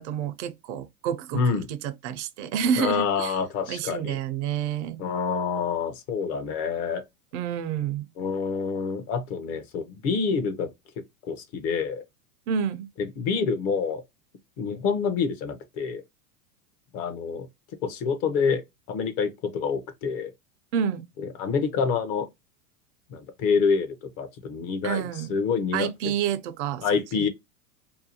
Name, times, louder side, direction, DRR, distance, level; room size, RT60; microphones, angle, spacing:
voice 1, 0.0-3.4 3.7-5.0 7.3-8.1 12.5-12.9 20.7-21.1 24.8-25.3 25.7-26.9 27.1-27.3, right 8 dB, 55° right, 0.5 m, -29 dB
voice 2, 1.3-1.7 2.8-4.2 5.0-7.0 8.2-10.7 11.2-12.0 13.0-14.0 14.6-16.0 16.9-17.5 17.8-18.6 18.9-20.3 21.2-22.3 23.1-26.1 26.8-27.3, left 5 dB, 35° left, 0.6 m, -27 dB
2.7 x 2.1 x 2.7 m
supercardioid pair, 135°, 43 cm